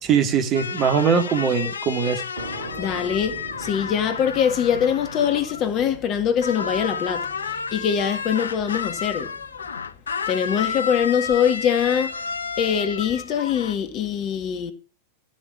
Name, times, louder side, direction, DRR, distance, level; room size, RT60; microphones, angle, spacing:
voice 1, 0.0-2.2, right 6 dB, 35° right, 2.2 m, -21 dB
sound 1, 0.5-6.1 6.4-13.8, left 6 dB, 70° left, 0.6 m, -31 dB
sound 2, 2.4-9.7, right 2 dB, 65° right, 3.2 m, -42 dB
voice 2, 2.8-9.3 10.3-12.2 12.6-14.7, left 8 dB, 35° left, 1.9 m, -23 dB
13.0 x 7.5 x 6.1 m
figure-of-eight pair, 90°, 0 cm